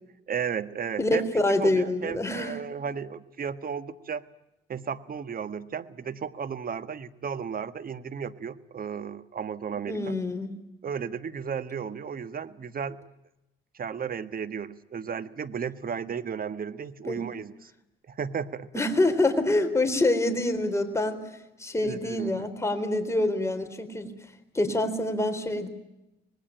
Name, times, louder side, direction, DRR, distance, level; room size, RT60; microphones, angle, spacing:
voice 1, 0.3-4.2 4.7-10.1 10.8-13.0 13.7-17.7 18.1-18.7 21.8-22.5, right 7 dB, 45° right, 13 dB, 1.5 m, -34 dB
voice 2, 1.0-2.6 9.9-10.6 17.1-17.2 18.7-21.2 21.6-24.1 24.5-25.7, left 2 dB, 15° left, 6 dB, 4.0 m, -26 dB
25.5 x 20.0 x 9.0 m, 0.93 s
cardioid pair, 90°, 20 cm